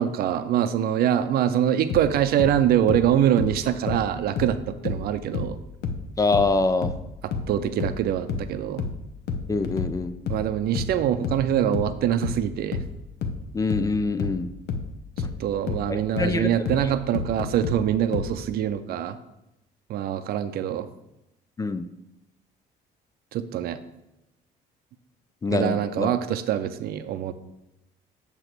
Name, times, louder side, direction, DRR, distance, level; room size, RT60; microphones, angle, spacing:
voice 1, 0.0-5.6 7.5-8.8 10.3-12.8 15.4-19.2 19.9-20.9 23.3-23.8 25.5-27.3, right 10 dB, 65° right, 11 dB, 0.5 m, -24 dB
sound 1, 1.9-5.1 5.3-18.4, left 5 dB, 75° left, 0.8 m, -30 dB
voice 2, 6.2-6.9 9.5-10.1 13.5-14.5 15.9-16.5 16.8-16.9 21.6-21.9 25.4-26.1, left 3 dB, 20° left, 11 dB, 0.4 m, -25 dB
7.9 x 3.0 x 6.0 m, 0.90 s
cardioid pair, 110°, 17 cm